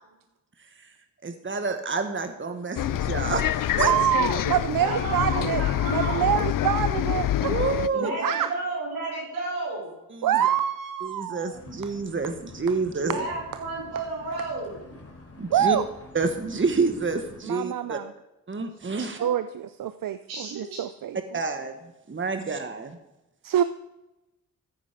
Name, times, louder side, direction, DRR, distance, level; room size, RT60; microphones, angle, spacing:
voice 1, 1.2-3.5 3.8-3.9 7.5-8.1 10.1-10.4 11.0-13.1 15.4-15.8 16.1-18.0 18.5-19.2 21.3-21.7 22.1-23.0, right 4 dB, 35° right, 7 dB, 1.5 m, -28 dB
Bus, 2.8-7.9, left 12 dB, 65° left, 0.5 m, -26 dB
voice 2, 3.8-5.6 5.9-7.5 8.2-8.5 10.2-11.6 15.5-15.9 17.4-18.1 19.2-19.5 19.8-21.2 23.4-23.6, right 10 dB, 65° right, 12 dB, 0.6 m, -25 dB
voice 3, 4.8-6.4 7.9-9.9 13.0-14.8 20.3-20.8, right 2 dB, 90° right, -4 dB, 6.0 m, -32 dB
sound 1, 11.5-17.4, left 2 dB, 40° left, 3.8 m, -47 dB
14.5 x 9.4 x 5.1 m, 0.96 s
supercardioid pair, 45°, 36 cm